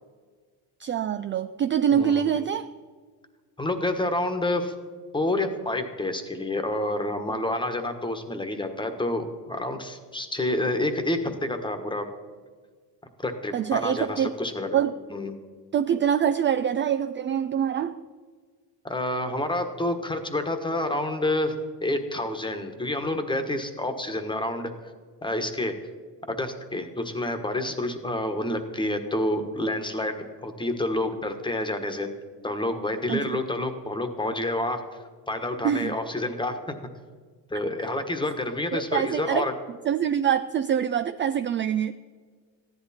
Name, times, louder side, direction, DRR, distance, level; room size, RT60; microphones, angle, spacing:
voice 1, 0.8-2.7 13.5-14.3 14.7-15.0 15.7-18.0 33.1-33.4 35.6-36.0 38.7-39.5 39.9-41.9, right 9 dB, 30° right, 0.4 m, -25 dB
voice 2, 1.9-2.2 3.6-4.7 5.1-12.1 13.2-14.8 15.1-15.3 18.8-21.5 21.8-24.7 25.2-25.7 26.3-32.1 32.4-34.8 35.3-36.6 37.5-39.5, left 1 dB, 10° left, 1.3 m, -28 dB
14.5 x 11.0 x 4.3 m
cardioid pair, 105°, 39 cm